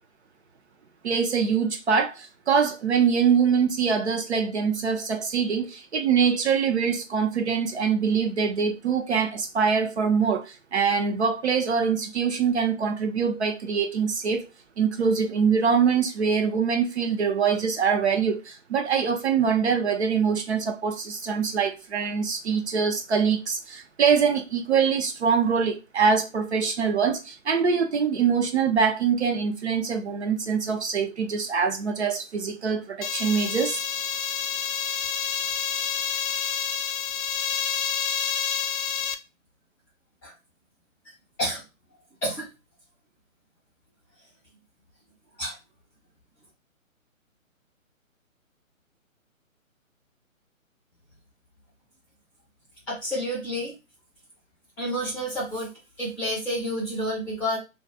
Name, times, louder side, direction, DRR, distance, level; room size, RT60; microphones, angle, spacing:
voice 1, 1.0-14.4 14.8-33.8, right 6 dB, 55° right, 0.5 m, -24 dB
sound 1, 33.0-39.2, left 7 dB, 80° left, 0.5 m, -28 dB
voice 2, 52.9-53.7 54.8-55.7 56.0-57.6, equal, 5° left, 0.6 m, -29 dB
2.3 x 2.2 x 2.7 m
figure-of-eight pair, 145°, 41 cm